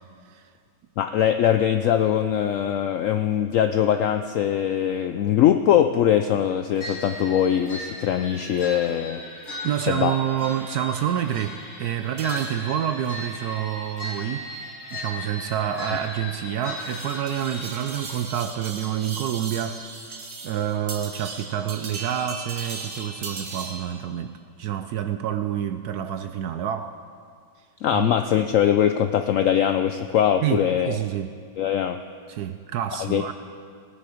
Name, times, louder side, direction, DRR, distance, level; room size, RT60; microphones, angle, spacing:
voice 1, 1.0-9.2 9.9-10.1 27.8-31.0 31.6-32.0 33.0-33.3, left 10 dB, 90° left, 8 dB, 0.7 m, -22 dB
sound 1, 6.8-18.2, left 1 dB, 50° left, 2.4 m, -37 dB
voice 2, 9.6-14.5 14.9-19.8 20.4-27.0 27.9-28.1 30.4-31.3 32.3-33.3, right 10 dB, 70° right, 9 dB, 1.0 m, -28 dB
sound 2, 12.2-24.0, right 4 dB, 50° right, 1.6 m, -39 dB
18.0 x 9.9 x 5.0 m, 2.1 s
omnidirectional pair, 1.9 m